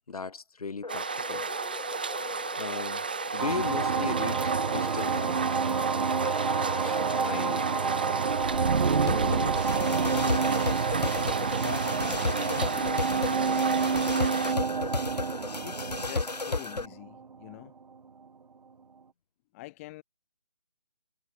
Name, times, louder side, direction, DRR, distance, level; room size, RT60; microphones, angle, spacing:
voice 1, 0.1-1.5 2.6-3.1 3.3-5.4 6.8-7.0, left 4 dB, 65° left, 5.3 m, -37 dB
sound 1, 0.8-16.9, left 3 dB, 90° left, 3.1 m, -36 dB
sound 2, 0.9-14.5, right 5 dB, 15° right, 0.3 m, -34 dB
sound 3, 3.4-17.5, right 5 dB, 75° right, 0.9 m, -28 dB
voice 2, 7.2-7.7 8.9-10.7 11.5-13.8 15.6-17.7 19.5-20.0, left 20 dB, 20° left, 3.0 m, -43 dB
figure-of-eight pair, 155°, 20 cm